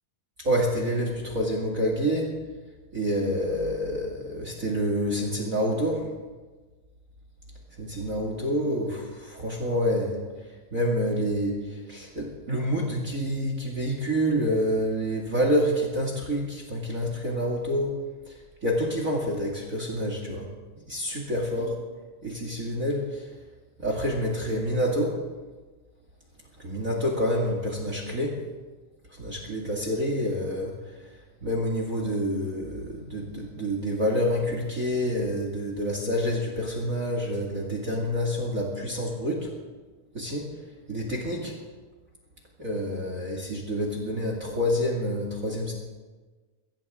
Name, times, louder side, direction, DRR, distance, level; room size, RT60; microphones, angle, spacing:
voice 1, 0.4-2.3 2.9-6.1 7.8-10.2 10.7-17.9 18.3-20.5 20.9-21.7 22.2-23.3 23.8-25.1 26.6-28.4 29.2-30.7 31.4-39.5 40.1-40.5 40.9-41.5 42.6-45.7, equal, 30° right, 0 dB, 2.1 m, -27 dB
22.5 x 16.5 x 3.7 m, 1.3 s
omnidirectional pair, 4.0 m